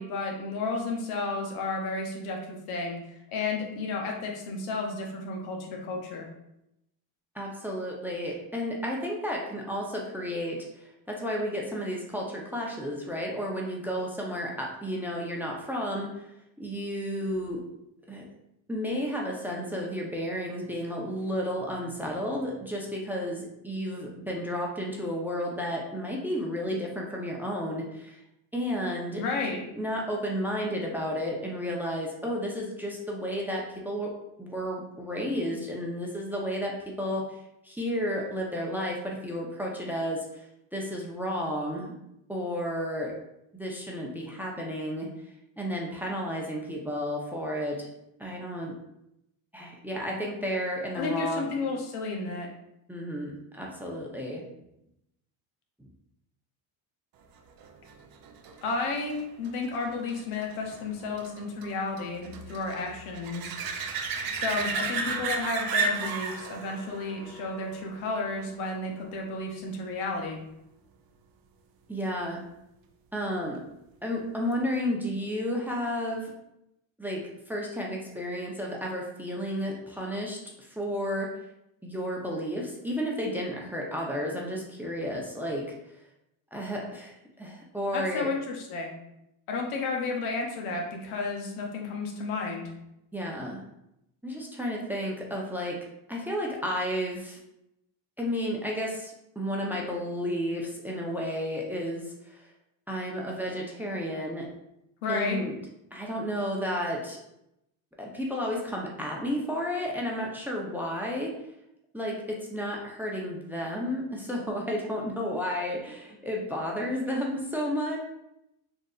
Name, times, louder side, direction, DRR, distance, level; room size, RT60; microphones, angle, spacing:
voice 1, 0.0-3.0 3.3-6.3 29.2-29.6 50.9-52.5 58.6-63.6 64.3-70.4 87.9-88.9 89.5-92.7 105.0-105.4, left 3 dB, 80° left, 0 dB, 0.9 m, -32 dB
voice 2, 7.3-16.3 16.6-17.6 18.1-18.2 18.7-28.2 28.5-29.2 29.5-34.1 34.4-37.2 37.6-40.5 40.7-41.9 42.3-43.1 43.5-45.1 45.6-47.9 48.2-48.7 49.5-51.5 52.9-54.4 55.8-55.9 71.9-72.4 73.1-73.6 74.0-76.3 77.0-77.2 77.5-81.3 81.8-85.7 86.5-88.3 93.1-93.6 94.2-95.8 96.1-97.4 98.2-102.5 102.9-104.5 105.1-105.6 105.9-107.2 108.0-111.3 111.9-118.0, equal, 5° right, -2 dB, 0.6 m, -32 dB
sound 1, 57.6-68.9 74.5-74.6, right 4 dB, 50° right, 0.5 m, -34 dB
3.9 x 2.6 x 2.3 m, 0.83 s
supercardioid pair, 80°, 48 cm